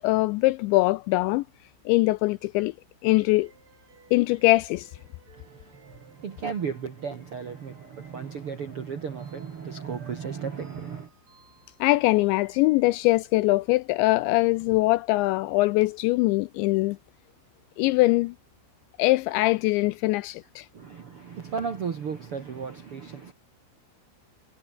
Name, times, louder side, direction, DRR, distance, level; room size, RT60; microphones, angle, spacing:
voice 1, 0.0-1.4 1.9-2.7 3.0-3.5 4.1-4.9 11.8-17.0 17.8-18.3 19.0-20.7, left 21 dB, 85° left, 2.6 m, -22 dB
sound 1, 3.2-13.4, right 5 dB, 35° right, 4.9 m, -58 dB
voice 2, 5.4-11.1 20.7-23.3, right 6 dB, 85° right, 1.2 m, -35 dB
omnidirectional pair, 5.7 m